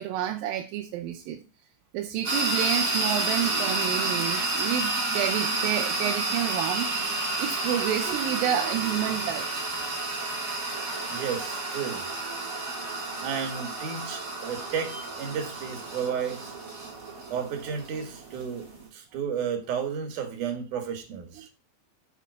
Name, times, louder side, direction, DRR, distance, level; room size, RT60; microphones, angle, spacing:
voice 1, 0.0-1.4 1.9-9.7 21.4-21.5, right 10 dB, 80° right, 2.4 m, -30 dB
sound 1, 2.2-18.9, right 2 dB, 40° right, 1.8 m, -30 dB
voice 2, 11.1-12.0 13.2-16.6 17.3-21.5, right 7 dB, 65° right, 2.7 m, -33 dB
5.7 x 5.2 x 6.0 m
omnidirectional pair, 4.2 m